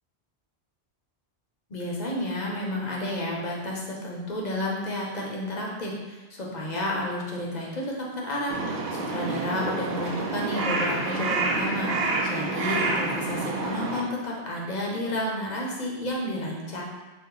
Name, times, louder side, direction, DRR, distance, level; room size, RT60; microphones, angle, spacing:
voice 1, 1.7-16.8, left 1 dB, 45° left, -3 dB, 0.8 m, -31 dB
Crow, 8.5-14.0, right 3 dB, 65° right, 0.8 m, -28 dB
4.3 x 2.1 x 3.8 m, 1.2 s
omnidirectional pair, 1.1 m